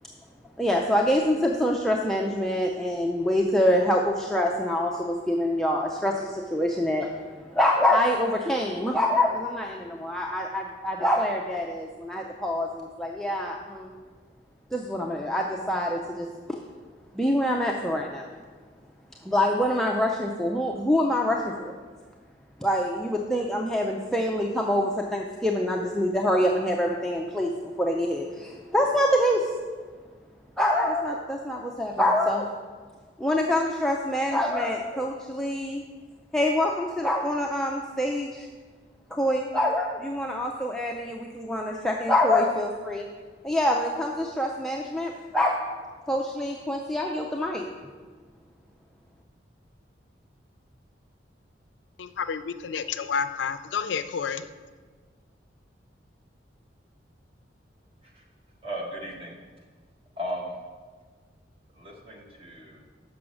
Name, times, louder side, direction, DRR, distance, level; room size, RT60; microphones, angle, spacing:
voice 1, 0.6-7.1 7.5-13.9 14.7-16.3 17.1-18.2 19.2-21.7 22.6-27.5 27.8-29.5 30.6-32.5 33.2-35.8 36.3-38.5 39.1-43.1 43.4-45.6 46.1-47.6, left 1 dB, 5° left, -1 dB, 0.4 m, -25 dB
voice 2, 52.0-54.5, left 6 dB, 80° left, 12 dB, 0.4 m, -30 dB
voice 3, 58.6-59.4 60.2-60.6 61.7-62.8, equal, 30° right, -1 dB, 1.2 m, -36 dB
6.0 x 6.0 x 6.3 m, 1.5 s
head